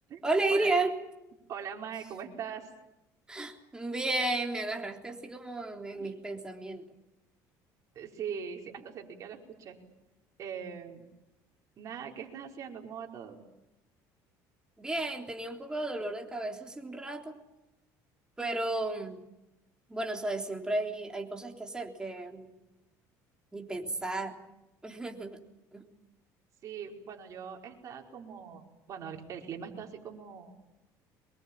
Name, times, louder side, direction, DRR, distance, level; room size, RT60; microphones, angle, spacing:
voice 1, 0.2-1.0 3.3-6.9 14.8-17.4 18.4-19.2 19.9-22.5 23.5-24.4 24.8-25.4 25.7-25.8, right 2 dB, 10° right, 3 dB, 3.5 m, -33 dB
voice 2, 1.5-2.7 6.0-6.1 7.9-9.8 10.4-11.1 11.8-13.4 26.6-28.6 28.9-30.5, right 7 dB, 45° right, 1 dB, 5.0 m, -41 dB
24.5 x 22.0 x 8.9 m, 0.95 s
cardioid pair, 125°, 8 cm